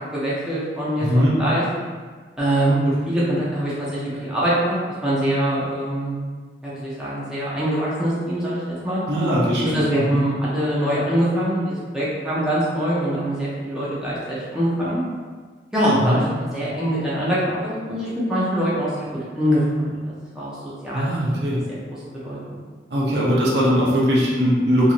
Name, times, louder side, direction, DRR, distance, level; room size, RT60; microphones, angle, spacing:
voice 1, 0.0-1.6 2.4-4.8 5.0-6.1 6.6-9.0 9.6-15.0 15.7-19.1 19.4-19.9 20.3-21.2 21.5-22.0 22.2-22.6, right 1 dB, 5° right, -9 dB, 0.6 m, -23 dB
voice 2, 1.0-1.3 9.1-10.2 16.0-16.2 20.9-21.6 22.9-24.9, equal, 70° right, -5 dB, 0.7 m, -20 dB
2.9 x 2.6 x 2.5 m, 1.5 s
head